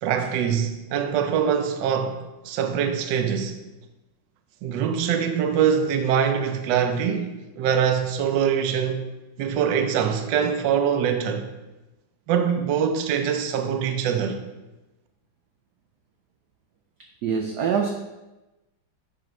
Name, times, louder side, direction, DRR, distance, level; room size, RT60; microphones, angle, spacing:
voice 1, 0.0-3.6 4.6-9.0 9.4-11.5 12.3-14.4, right 7 dB, 70° right, 1.1 m, -23 dB
voice 2, 17.2-17.9, right 7 dB, 85° right, 0.8 m, -24 dB
11.0 x 3.9 x 3.1 m
omnidirectional pair, 2.4 m